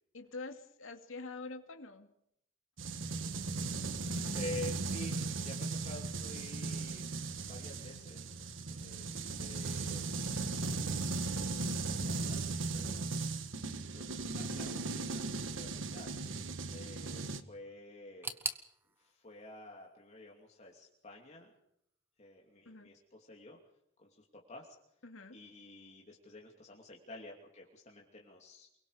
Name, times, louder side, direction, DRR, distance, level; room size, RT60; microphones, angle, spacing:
voice 1, 0.1-2.1 22.7-22.9 25.0-25.4, left 3 dB, 85° left, 4 dB, 2.4 m, -46 dB
sound 1, 2.8-17.4, right 3 dB, 70° right, 1.4 m, -37 dB
voice 2, 4.3-7.2 7.4-8.4 8.7-10.0 11.4-13.0 13.9-14.0 14.3-16.1 16.7-18.4 19.0-21.5 22.2-23.6 24.0-24.7 25.3-28.7, left 2 dB, 35° left, -1 dB, 2.9 m, -49 dB
sound 2, 18.2-21.1 21.4-22.2 22.5-22.6 23.4-23.5, right 3 dB, 10° right, 1.3 m, -44 dB
29.5 x 22.5 x 5.1 m, 0.75 s
head